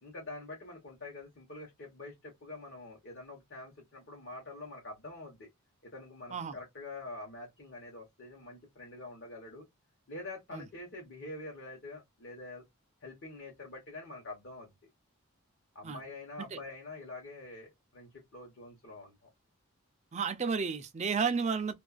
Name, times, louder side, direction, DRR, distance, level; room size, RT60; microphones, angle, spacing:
voice 1, 0.0-5.5 5.8-9.6 10.1-12.6 13.0-14.8 15.7-19.3, left 2 dB, 50° left, 0.9 m, -46 dB
voice 2, 20.1-21.7, right 5 dB, 30° right, 0.3 m, -32 dB
2.4 x 2.3 x 2.3 m
head